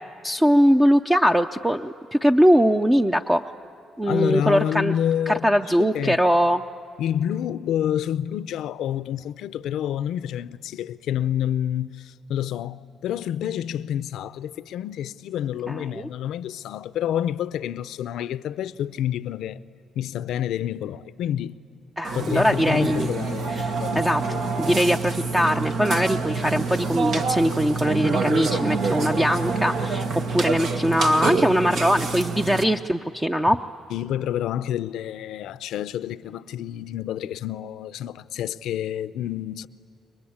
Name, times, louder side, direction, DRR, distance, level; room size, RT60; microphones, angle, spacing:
voice 1, 0.2-3.4 4.0-4.9 5.3-6.6 15.7-16.1 22.0-23.1 23.6-24.2 24.6-33.6, equal, 10° right, 0.7 m, -21 dB
voice 2, 4.0-6.2 7.0-19.6 19.9-21.6 22.1-24.9 33.9-39.7, left 10 dB, 80° left, 0.6 m, -28 dB
Burping eructation, 22.0-32.6, right 4 dB, 70° right, 1.8 m, -27 dB
30.0 x 23.0 x 8.7 m
cardioid pair, 90°, 0 cm